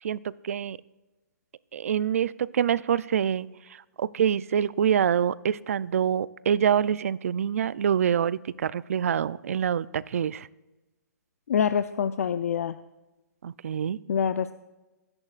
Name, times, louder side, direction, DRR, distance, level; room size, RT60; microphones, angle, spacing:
voice 1, 0.0-0.8 1.7-10.5 13.4-14.0, right 8 dB, 50° right, 20 dB, 0.4 m, -26 dB
voice 2, 11.5-12.8 14.1-14.5, left 7 dB, 55° left, 12 dB, 0.5 m, -25 dB
24.5 x 10.5 x 2.4 m, 1.1 s
hypercardioid pair, 170°, 10 cm